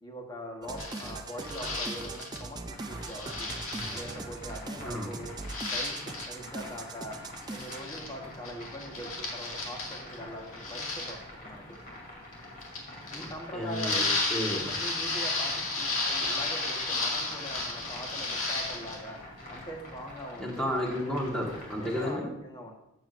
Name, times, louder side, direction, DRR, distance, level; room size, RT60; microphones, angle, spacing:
voice 1, 0.0-3.5 3.9-5.4 5.7-7.2 7.5-11.6 13.1-14.1 14.5-19.2 19.5-20.7 21.8-22.7, equal, 20° left, 1 dB, 1.3 m, -42 dB
sound 1, 0.6-7.8, right 3 dB, 20° right, 0.4 m, -41 dB
sound 2, 0.8-2.4 3.0-4.1 5.5-6.3 7.4-8.1 8.3-10.2 10.5-11.1 12.6-13.3 13.7-19.0, left 3 dB, 80° left, 2.1 m, -33 dB
sound 3, 2.6-22.1, left 1 dB, 40° left, 2.7 m, -46 dB
voice 2, 13.5-14.7 20.4-22.3, equal, 5° left, -3 dB, 1.5 m, -32 dB
13.0 x 7.8 x 2.6 m, 0.85 s
head